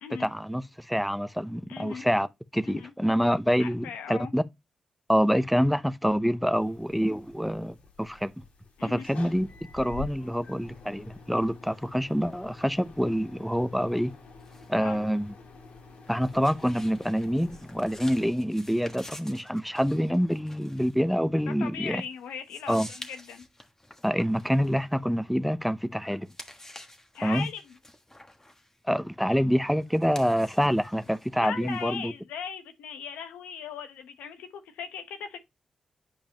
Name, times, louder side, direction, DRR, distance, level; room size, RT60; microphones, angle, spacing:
voice 1, 0.2-2.3 2.5-4.4 5.1-8.3 8.8-9.5 9.7-14.1 14.7-15.3 16.1-22.0 22.7-22.9 24.0-26.3 27.2-27.5 28.8-32.1, equal, ahead, 0.7 m, -26 dB
voice 2, 1.7-2.1 2.6-2.9 3.6-4.3 8.8-9.1 14.8-15.0 21.4-23.4 27.1-27.8 31.3-35.4, left 7 dB, 90° left, 0.9 m, -38 dB
sound 1, 6.5-18.3, left 4 dB, 70° left, 1.8 m, -47 dB
sound 2, 14.1-25.7 26.1-32.2, left 1 dB, 20° left, 1.4 m, -50 dB
9.0 x 5.1 x 2.9 m
supercardioid pair, 45°, 2 cm